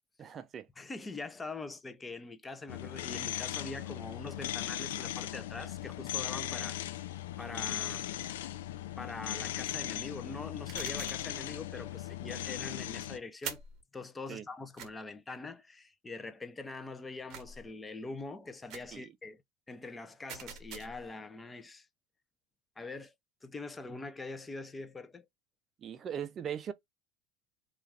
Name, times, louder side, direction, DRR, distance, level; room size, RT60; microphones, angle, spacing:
voice 1, 0.2-0.7 14.3-14.4 18.9-19.1 25.8-26.7, right 8 dB, 40° right, 0.4 m, -39 dB
voice 2, 0.8-6.8 7.4-8.1 9.0-13.6 13.9-19.4 19.7-21.9 22.8-23.1 23.4-25.3, left 3 dB, 20° left, 0.5 m, -43 dB
sound 1, 2.7-13.2, left 13 dB, 80° left, 0.3 m, -38 dB
sound 2, 10.7-11.3 13.4-13.8 14.8-14.9 17.3-17.7 18.7-19.0 20.3-21.1, right 7 dB, 55° right, 0.8 m, -44 dB
2.4 x 2.2 x 3.3 m
hypercardioid pair, 90°, 0 cm